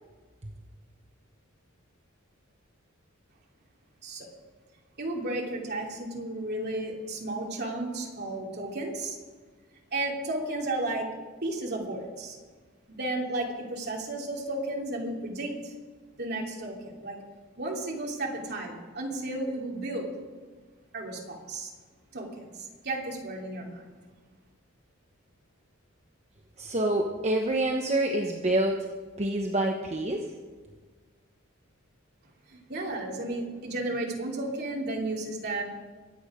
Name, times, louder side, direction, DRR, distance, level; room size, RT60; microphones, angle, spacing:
voice 1, 5.0-9.2 9.9-11.1 11.4-12.4 12.9-15.7 16.2-17.2 17.6-20.1 20.9-21.7 22.1-23.8 32.5-35.6, right 2 dB, 50° right, -1 dB, 3.0 m, -33 dB
voice 2, 26.6-28.9 29.2-30.3, right 1 dB, 35° right, 2 dB, 1.0 m, -27 dB
23.0 x 8.9 x 5.0 m, 1.4 s
head